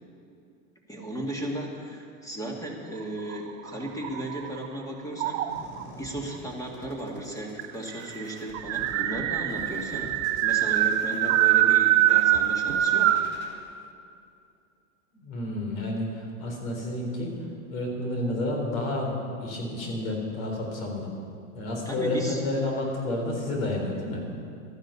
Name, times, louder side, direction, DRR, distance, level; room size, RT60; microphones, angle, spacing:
voice 1, 0.9-5.4 6.0-10.1 10.4-13.2 21.9-22.4, right 1 dB, 10° left, 0 dB, 2.2 m, -35 dB
sound 1, 3.2-4.7 5.2-5.8 6.8-6.9 7.2-7.3 7.6-13.3, right 13 dB, 60° right, 0.9 m, -24 dB
sound 2, 5.5-13.5, equal, 25° left, 3.3 m, -48 dB
voice 2, 15.2-17.3 17.7-21.1 21.5-24.2, left 1 dB, 80° left, 1 dB, 4.2 m, -30 dB
13.0 x 10.0 x 7.1 m, 2.5 s
supercardioid pair, 125°, 40 cm